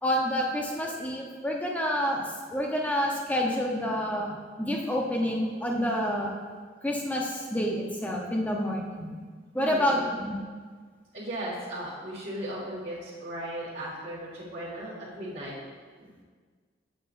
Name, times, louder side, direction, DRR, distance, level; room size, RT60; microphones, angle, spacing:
voice 1, 0.0-6.4 6.8-9.2 9.5-10.3, equal, 10° left, -1 dB, 0.9 m, -28 dB
voice 2, 9.6-10.1 11.1-15.5 16.0-16.1, right 1 dB, 45° right, -11 dB, 1.8 m, -37 dB
8.3 x 7.7 x 2.6 m, 1.5 s
head